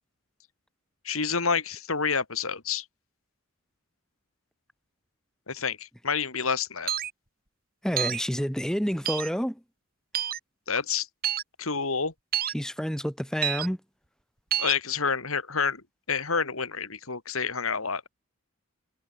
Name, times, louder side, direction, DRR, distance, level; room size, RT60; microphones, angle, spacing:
voice 1, 1.0-2.8 5.5-6.9 10.7-11.1 11.6-12.1 14.6-15.8 16.1-18.1, left 5 dB, 85° left, 3.1 m, -28 dB
sound 1, 6.9-7.1 8.0-8.2 9.1-9.3 10.1-10.4 11.2-11.4 12.3-12.5 13.4-13.7 14.5-14.7, right 10 dB, 45° right, 4.1 m, -28 dB
voice 2, 7.8-9.6 12.5-13.8, equal, 5° left, 3.5 m, -29 dB
head